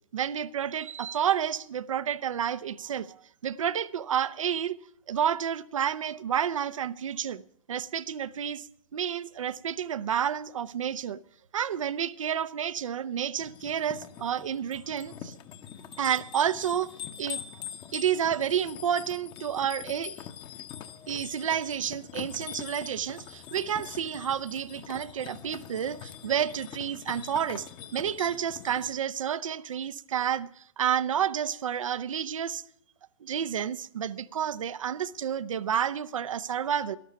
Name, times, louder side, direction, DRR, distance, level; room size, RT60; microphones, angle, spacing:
voice 1, 0.1-4.7 5.1-7.4 7.7-8.7 8.9-11.2 11.5-15.3 16.0-16.9 17.2-17.4 17.9-20.3 21.1-32.6 33.2-37.0, right 9 dB, 65° right, 0.7 m, -30 dB
sound 1, 13.4-28.9, left 9 dB, 25° left, 1.0 m, -43 dB
13.0 x 12.0 x 6.9 m
figure-of-eight pair, 120°, 18 cm